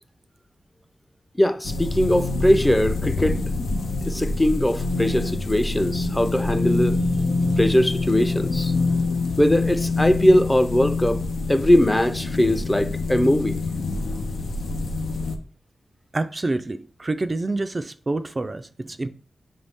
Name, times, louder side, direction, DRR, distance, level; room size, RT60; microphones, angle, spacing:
voice 1, 1.4-3.4 4.1-7.0 7.6-8.7 9.4-11.2 11.5-13.6, left 1 dB, 15° left, 0.5 m, -20 dB
sound 1, 1.6-15.4, left 3 dB, 90° left, 0.5 m, -26 dB
voice 2, 16.1-19.1, right 2 dB, 40° right, 0.4 m, -27 dB
5.3 x 2.6 x 3.5 m
cardioid pair, 45°, 0 cm